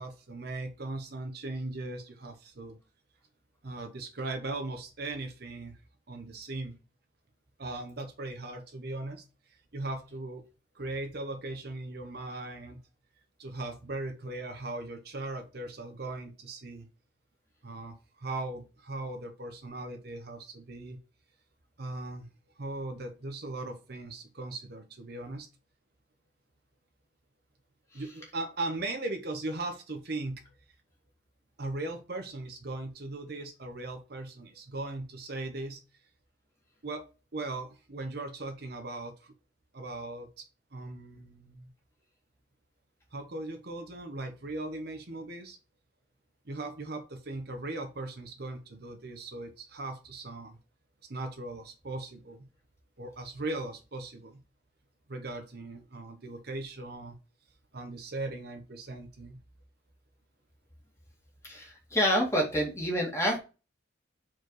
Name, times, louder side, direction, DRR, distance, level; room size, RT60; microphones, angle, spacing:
voice 1, 0.0-2.8 3.6-5.8 6.1-6.8 7.6-9.2 9.5-10.4 10.7-12.8 13.4-16.9 17.6-21.0 21.8-22.3 22.6-25.5 27.9-30.4 31.6-35.8 36.8-37.0 37.3-39.3 39.7-41.7 43.1-45.6 46.4-50.6 51.1-52.5 53.0-54.4 55.1-57.2 57.7-59.4, right 2 dB, 55° right, 5 dB, 0.9 m, -38 dB
voice 2, 61.4-63.4, equal, 15° left, -1 dB, 2.0 m, -27 dB
4.6 x 4.4 x 4.7 m, 0.31 s
head